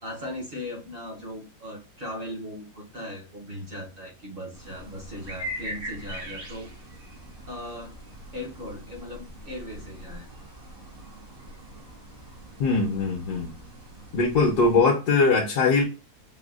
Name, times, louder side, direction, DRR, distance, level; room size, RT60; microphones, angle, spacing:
voice 1, 0.0-6.7 7.5-7.9 8.3-10.3, left 1 dB, 45° right, 0 dB, 0.8 m, -38 dB
sound 1, 4.5-14.8, right 1 dB, 90° right, 2.5 m, -42 dB
voice 2, 12.6-13.5 14.1-15.8, left 3 dB, 70° left, 1 dB, 1.2 m, -21 dB
5.5 x 2.2 x 2.3 m, 0.32 s
omnidirectional pair, 1.8 m